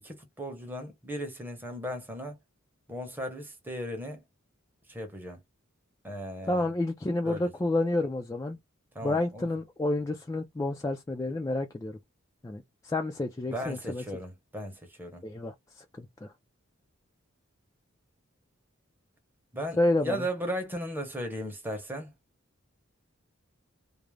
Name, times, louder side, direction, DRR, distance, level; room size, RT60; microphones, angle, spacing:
voice 1, 0.0-2.4 2.9-4.2 4.9-5.4 6.0-6.7 7.2-7.5 8.9-9.5 13.5-15.2 19.5-22.1, equal, 10° right, 0.8 m, -36 dB
voice 2, 6.5-8.6 9.0-12.0 12.4-14.0 15.2-16.3 19.8-20.3, left 2 dB, 15° left, 0.3 m, -30 dB
2.4 x 2.0 x 3.1 m
head